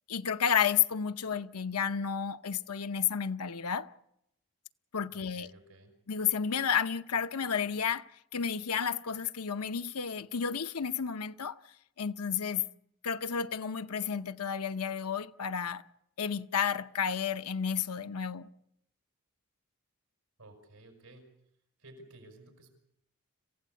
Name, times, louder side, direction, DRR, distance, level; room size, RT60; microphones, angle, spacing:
voice 1, 0.1-3.9 4.9-5.5 6.1-8.0 8.3-11.6 12.0-12.7 13.0-15.8 16.2-18.5, left 7 dB, 85° left, 0.8 m, -31 dB
voice 2, 5.1-5.9 20.4-21.2 21.8-22.7, right 2 dB, 80° right, 6.3 m, -54 dB
26.5 x 16.0 x 8.2 m
head